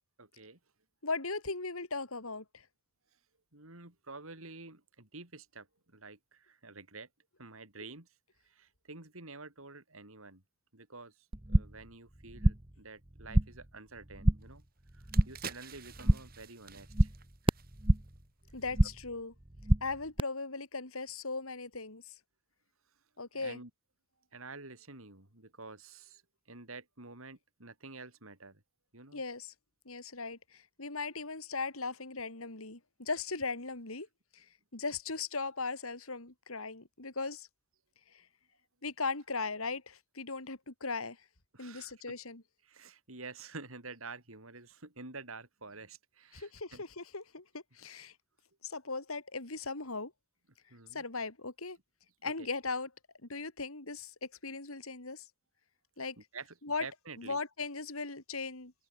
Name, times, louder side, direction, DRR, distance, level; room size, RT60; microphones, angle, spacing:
voice 1, 0.2-0.6 3.5-7.1 7.4-8.1 8.4-10.4 10.7-14.6 14.9-17.1 17.4-17.5 23.3-23.7 24.3-28.6 28.9-29.2 41.5-42.2 42.6-46.8 50.7-51.0 52.2-52.5 56.2-57.4, right 3 dB, 80° right, 4.8 m, -49 dB
voice 2, 1.0-2.7 18.5-19.3 19.8-22.1 23.2-23.6 29.1-29.5 29.9-34.1 34.3-34.5 34.7-37.5 38.1-38.3 38.8-41.2 41.6-42.4 46.3-48.1 48.6-50.1 50.9-51.8 52.2-52.9 53.2-55.2 56.0-56.2 56.6-56.9 57.2-58.7, left 4 dB, 85° left, 3.5 m, -38 dB
sound 1, 11.3-11.9 12.1-12.8 13.1-13.7 14.0-14.6 14.9-15.5 15.8-16.4 16.7-18.2 18.5-19.1 19.4-20.2, right 1 dB, 25° right, 1.3 m, -28 dB
sound 2, 14.4-14.5 14.9-18.2 18.5-18.7, right 6 dB, 45° right, 7.8 m, -49 dB
head